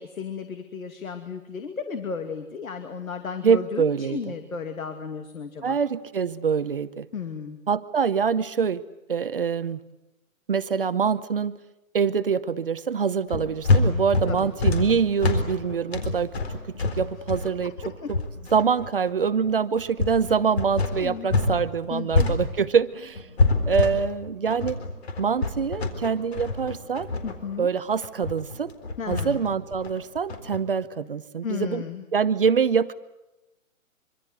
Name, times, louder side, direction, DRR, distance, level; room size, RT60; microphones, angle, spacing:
voice 1, 0.0-5.8 7.1-7.6 14.3-14.5 14.7-15.0 18.0-18.1 21.0-21.3 21.9-22.3 27.2-27.7 29.0-29.4 31.4-32.0, left 6 dB, 75° left, 7 dB, 2.6 m, -34 dB
voice 2, 3.4-4.3 5.6-7.1 7.7-8.8 9.1-9.8 10.5-11.5 11.9-16.3 17.0-17.7 18.5-23.2 23.7-24.8 25.2-27.1 27.6-28.7 29.1-31.8 32.1-32.9, right 6 dB, 40° right, 13 dB, 0.8 m, -24 dB
sound 1, 13.3-21.6 21.8-30.6, left 3 dB, 45° left, 4.0 m, -26 dB
25.0 x 25.0 x 8.0 m, 0.97 s
hypercardioid pair, 170°, 42 cm